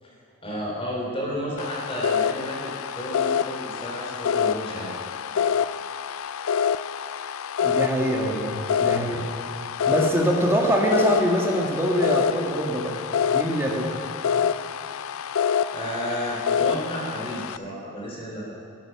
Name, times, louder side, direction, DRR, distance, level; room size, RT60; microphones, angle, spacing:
voice 1, 0.4-4.9 15.7-18.6, equal, 25° left, -3 dB, 3.7 m, -32 dB
sound 1, 1.6-17.6, left 7 dB, 85° left, 0.4 m, -27 dB
voice 2, 7.6-9.2 9.9-12.9 13.3-13.9, equal, 10° right, -1 dB, 1.8 m, -24 dB
12.5 x 12.0 x 7.1 m, 2.7 s
head